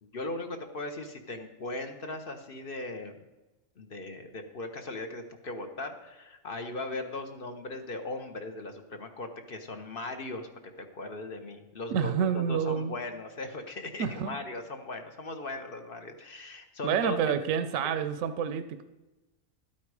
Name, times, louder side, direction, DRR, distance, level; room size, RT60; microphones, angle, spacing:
voice 1, 0.0-3.2 3.8-17.3 17.8-17.9, left 2 dB, 45° left, 6 dB, 1.0 m, -38 dB
voice 2, 11.9-13.0 14.0-14.4 16.8-18.8, right 7 dB, 75° right, 10 dB, 1.0 m, -28 dB
12.5 x 8.7 x 4.8 m, 1.1 s
omnidirectional pair, 1.4 m